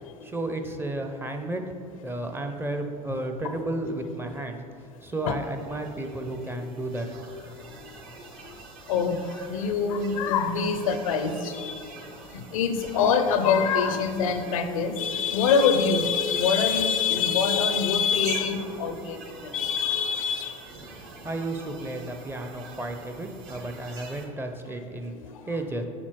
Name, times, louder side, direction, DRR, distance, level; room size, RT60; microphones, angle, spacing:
voice 1, 0.2-1.6 2.0-4.6 5.0-7.1 8.1-8.3 21.2-25.1 25.5-25.8, right 1 dB, 10° right, 5 dB, 0.6 m, -32 dB
sound 1, 5.1-24.3, right 3 dB, 50° right, 1.0 m, -45 dB
voice 2, 8.9-9.2 9.5-11.9 12.3-19.2 19.5-20.5 25.2-25.3, left 6 dB, 70° left, 8 dB, 0.5 m, -24 dB
9.9 x 4.2 x 3.0 m, 2.5 s
figure-of-eight pair, 70°, 18 cm